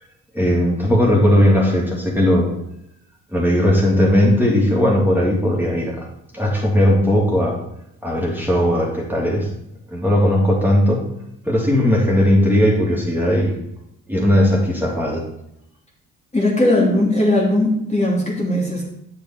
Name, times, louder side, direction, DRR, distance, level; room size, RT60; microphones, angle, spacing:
voice 1, 0.3-2.5 3.3-6.1 6.3-7.6 8.0-9.5 9.9-11.0 11.4-13.5 14.1-15.2, equal, 5° right, -3 dB, 3.1 m, -17 dB
voice 2, 16.3-18.9, left 1 dB, 15° left, -4 dB, 2.9 m, -18 dB
8.9 x 6.8 x 4.4 m, 0.78 s
hypercardioid pair, 45°, 39 cm